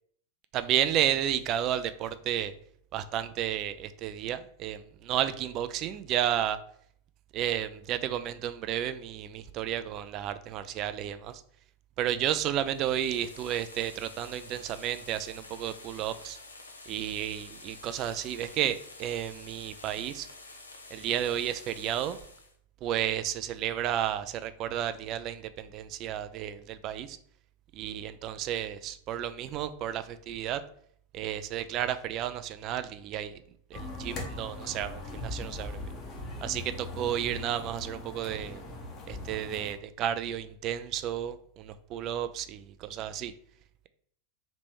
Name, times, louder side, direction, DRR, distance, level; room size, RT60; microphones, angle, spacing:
voice 1, 0.5-2.5 2.9-6.6 7.3-11.4 12.0-16.4 16.9-20.3 20.9-22.2 22.8-27.2 27.7-30.6 31.1-33.4 33.7-35.9 36.4-38.6 39.1-43.3, right 11 dB, 35° right, 12 dB, 0.3 m, -32 dB
sound 1, 12.6-22.5, left 3 dB, 75° left, 0.6 m, -49 dB
sound 2, 33.7-39.7, left 2 dB, 30° left, 0.9 m, -40 dB
3.2 x 3.0 x 4.4 m, 0.63 s
figure-of-eight pair, 90°, 0 cm